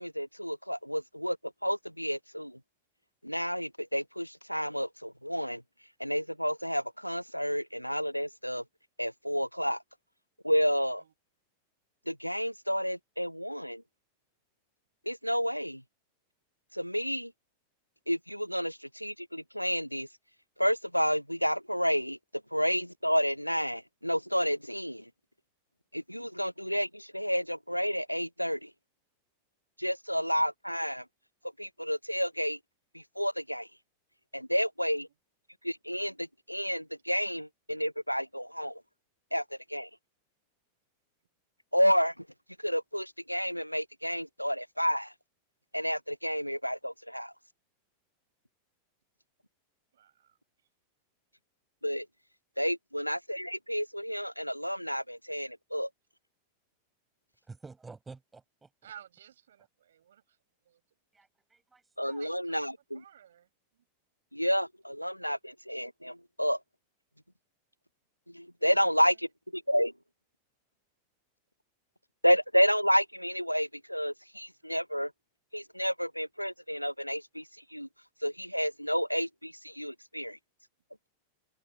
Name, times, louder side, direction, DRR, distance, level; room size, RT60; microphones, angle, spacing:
voice 1, 0.0-1.4 1.6-2.6 3.2-5.6 6.0-8.6 9.0-9.8 10.4-11.0 12.1-13.8 15.1-15.8 16.7-17.3 18.1-20.1 20.6-22.2 22.5-25.0 25.9-28.7 29.8-31.0 31.6-32.6 32.9-33.7 34.3-35.1 35.6-38.8 39.3-39.4 39.7-39.9 41.7-42.1 42.6-45.1 45.7-47.3 51.8-52.1 52.6-55.9 62.0-63.0 64.3-66.6 68.3-69.2 69.5-69.9 72.2-75.1 75.5-77.4 77.7-77.9 78.2-80.4, equal, 90° left, 0.3 m, -30 dB
voice 2, 49.9-50.7 58.8-61.0 62.1-63.8 68.6-69.2 69.8-69.9, right 10 dB, 65° right, 7.0 m, -56 dB
voice 3, 57.5-58.7 61.1-62.2, right 4 dB, 10° right, 5.1 m, -50 dB
figure-of-eight pair, 90°, 0 cm